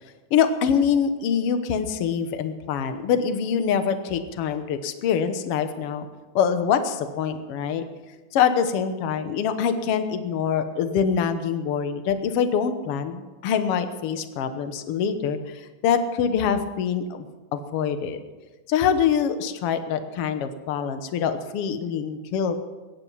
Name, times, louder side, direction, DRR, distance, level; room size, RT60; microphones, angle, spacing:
voice 1, 0.3-6.1 6.3-7.8 8.3-17.2 17.5-18.2 18.7-22.7, left 7 dB, 60° left, 9 dB, 1.6 m, -24 dB
22.0 x 10.5 x 5.7 m, 1.2 s
omnidirectional pair, 3.7 m